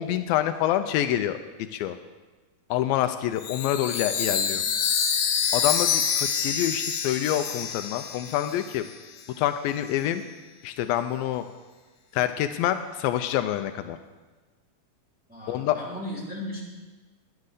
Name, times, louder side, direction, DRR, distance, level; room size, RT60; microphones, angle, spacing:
voice 1, 0.0-1.4 1.7-2.0 2.7-4.6 5.5-8.9 9.4-10.2 10.6-11.5 12.1-14.0 15.5-15.8, left 12 dB, 85° left, 9 dB, 2.3 m, -26 dB
Chime, 3.4-8.9, left 7 dB, 70° left, 2.1 m, -27 dB
voice 2, 4.1-4.7 15.3-16.6, left 1 dB, 5° right, -7 dB, 2.8 m, -37 dB
10.5 x 9.7 x 6.6 m, 1.3 s
omnidirectional pair, 4.2 m